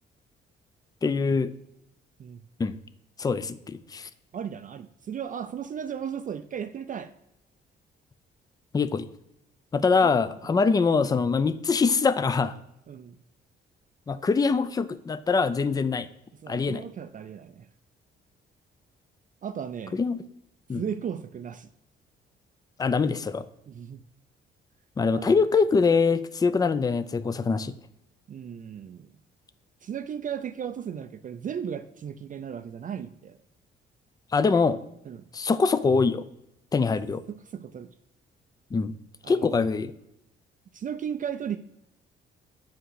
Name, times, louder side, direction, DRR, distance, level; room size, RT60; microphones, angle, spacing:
voice 1, 1.0-1.5 2.6-2.8 3.2-4.1 8.7-9.1 9.7-12.5 14.1-16.1 16.5-16.8 19.9-20.2 20.7-20.8 22.8-23.5 25.0-27.7 34.3-34.8 35.3-36.3 36.7-37.2 38.7-38.9 39.3-39.9, left 4 dB, 20° left, 0.4 m, -23 dB
voice 2, 4.3-7.1 10.1-10.6 12.9-13.2 16.4-17.7 19.4-20.0 20.7-21.7 23.7-24.0 25.1-25.4 28.3-29.1 29.8-33.4 35.1-35.2 37.3-37.9 39.2-39.6 40.7-41.6, right 8 dB, 40° right, 0.4 m, -36 dB
5.8 x 4.9 x 5.5 m
cardioid pair, 90°, 20 cm